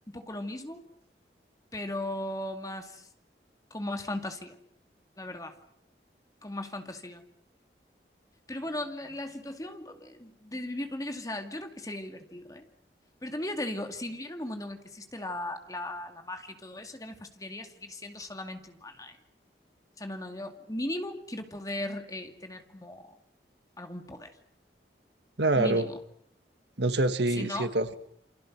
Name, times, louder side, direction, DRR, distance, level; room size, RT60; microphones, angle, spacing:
voice 1, 0.1-0.8 1.7-3.1 3.7-4.6 5.2-5.6 6.4-7.2 8.5-12.7 13.2-19.2 20.0-23.2 23.8-24.3 25.6-26.0 27.3-27.7, left 1 dB, 20° left, 6 dB, 2.3 m, -37 dB
voice 2, 25.4-25.9 26.8-28.0, right 2 dB, 85° right, 10 dB, 1.9 m, -26 dB
28.5 x 26.5 x 6.2 m, 0.68 s
head